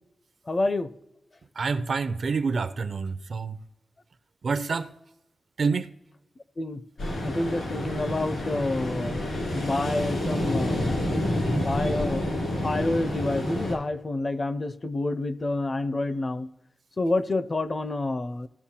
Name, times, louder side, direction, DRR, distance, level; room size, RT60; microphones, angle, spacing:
voice 1, 0.5-0.9 6.6-6.8 7.2-9.3 9.5-11.2 11.5-12.2 12.6-16.5 17.0-18.5, left 2 dB, 30° left, 0.4 m, -28 dB
voice 2, 1.6-3.6 4.4-4.9 5.6-5.9, right 4 dB, 55° right, 0.5 m, -27 dB
Ocean, 7.0-13.8, left 1 dB, 85° left, 3.0 m, -28 dB
16.0 x 6.6 x 2.8 m
wide cardioid pair, 140°, 0 cm